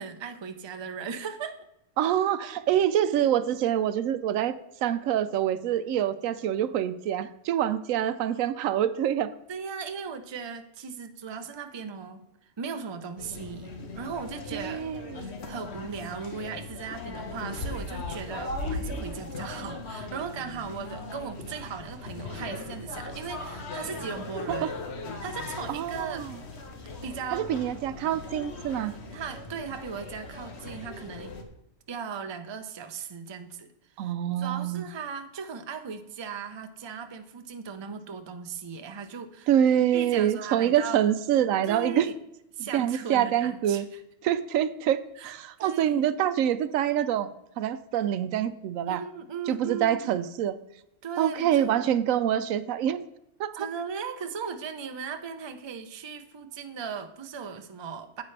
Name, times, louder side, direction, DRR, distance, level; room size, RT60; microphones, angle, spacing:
voice 1, 0.0-1.7 9.5-13.7 13.9-14.9 15.1-24.8 25.2-26.3 27.0-27.5 29.1-31.4 31.9-33.7 34.0-39.5 39.9-41.0 41.7-42.1 42.5-44.0 45.2-45.3 45.6-46.1 48.9-50.2 51.0-51.7 53.6-58.2, right 6 dB, 35° right, 8 dB, 0.4 m, -37 dB
voice 2, 2.0-4.5 4.8-9.3 14.5-15.2 24.5-24.7 25.7-26.3 27.3-28.9 34.0-34.8 39.5-42.1 42.6-43.9 44.2-47.3 47.6-49.0 49.5-50.5 51.2-53.0 53.4-53.7, right 10 dB, 90° right, 14 dB, 1.0 m, -26 dB
sound 1, 13.2-31.4, left 2 dB, 55° left, 1.3 m, -38 dB
9.8 x 8.3 x 3.3 m, 0.81 s
omnidirectional pair, 1.4 m